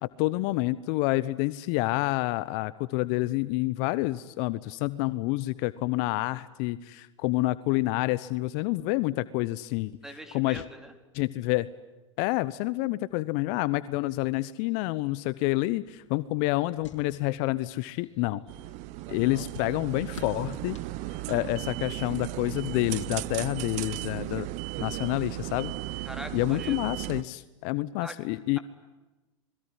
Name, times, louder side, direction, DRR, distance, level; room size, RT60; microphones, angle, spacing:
voice 1, 0.0-9.9 10.3-10.6 11.1-11.7 12.2-18.4 19.1-20.8 21.3-24.5 24.8-26.0 26.3-28.6, left 19 dB, 55° left, 17 dB, 0.9 m, -28 dB
voice 2, 10.0-10.9 26.0-26.8 28.0-28.2, equal, 5° right, 7 dB, 4.2 m, -42 dB
sound 1, 15.7-21.8, left 8 dB, 75° left, 3.8 m, -53 dB
sound 2, 18.5-27.2, right 18 dB, 50° right, 1.0 m, -36 dB
26.5 x 21.5 x 10.0 m, 1.1 s
hypercardioid pair, 90°, 16 cm